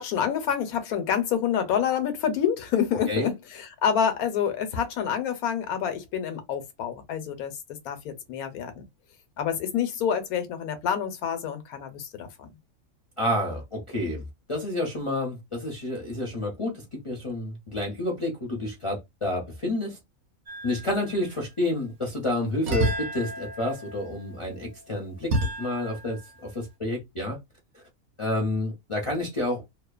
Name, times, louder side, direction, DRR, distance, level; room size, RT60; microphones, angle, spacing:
voice 1, 0.0-7.5 7.8-8.8 9.4-12.5, left 8 dB, 90° left, 1.1 m, -27 dB
voice 2, 13.2-14.2 14.5-20.0 20.6-27.4 28.2-29.6, left 1 dB, 50° left, 0.3 m, -29 dB
sound 1, 20.5-21.2 22.7-26.3, right 1 dB, 60° right, 0.9 m, -31 dB
2.7 x 2.1 x 2.3 m
omnidirectional pair, 1.5 m